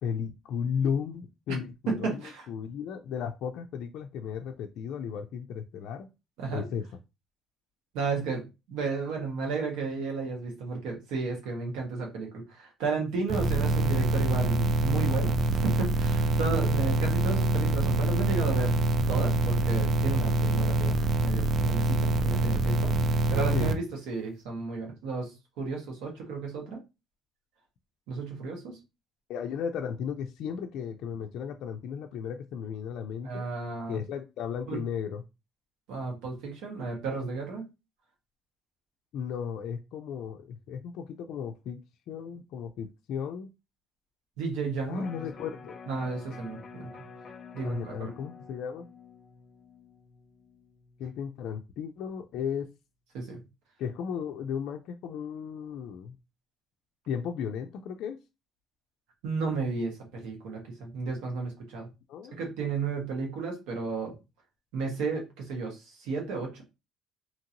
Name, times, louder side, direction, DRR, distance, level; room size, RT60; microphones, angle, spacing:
voice 1, 0.0-6.1 6.5-6.9 23.5-23.8 29.3-33.4 33.9-35.2 39.1-41.8 42.1-43.5 44.9-45.8 47.6-48.9 51.0-52.7 53.8-56.2 57.1-58.2 62.1-62.4, left 7 dB, 65° left, 4 dB, 0.3 m, -35 dB
voice 2, 1.5-2.5 6.4-6.6 7.9-18.7 19.1-20.9 21.2-25.3 25.6-26.8 28.1-28.8 33.2-34.0 34.7-34.8 35.9-37.6 44.4-45.1 45.9-46.9 47.5-48.1 53.1-53.4 59.2-61.9 62.3-64.1 64.7-66.6, right 4 dB, 85° right, 1 dB, 1.3 m, -33 dB
sound 1, 13.3-23.7, right 2 dB, 50° right, 0.4 m, -25 dB
Electric guitar, 45.0-51.2 51.6-51.7, left 5 dB, 35° left, 0.8 m, -48 dB
2.8 x 2.6 x 2.8 m, 0.26 s
cardioid pair, 115°, 0 cm